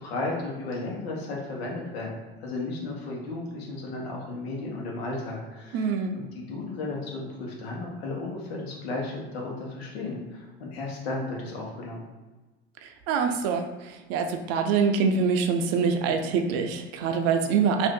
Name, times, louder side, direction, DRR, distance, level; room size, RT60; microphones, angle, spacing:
voice 1, 0.0-12.0, left 2 dB, 85° left, -2 dB, 1.1 m, -34 dB
voice 2, 5.7-6.1 12.8-17.9, right 5 dB, 55° right, 5 dB, 0.5 m, -25 dB
2.7 x 2.5 x 3.6 m, 1.2 s
supercardioid pair, 105°, 30 cm